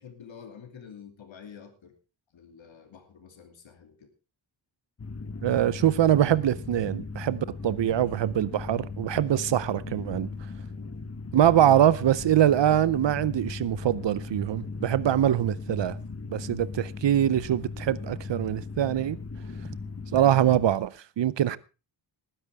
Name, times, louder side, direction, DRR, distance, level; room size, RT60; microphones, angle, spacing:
voice 1, 0.0-1.9 2.3-4.1 8.6-8.9 10.6-11.0 15.3-15.6 21.5-21.6, left 7 dB, 75° left, 2.8 m, -49 dB
sound 1, 5.0-20.7, left 4 dB, 30° left, 1.1 m, -38 dB
voice 2, 5.4-10.3 11.3-16.0 16.3-19.2 20.1-20.9 21.2-21.6, right 11 dB, 65° right, 0.7 m, -23 dB
19.0 x 10.0 x 3.5 m
wide cardioid pair, 110°, 47 cm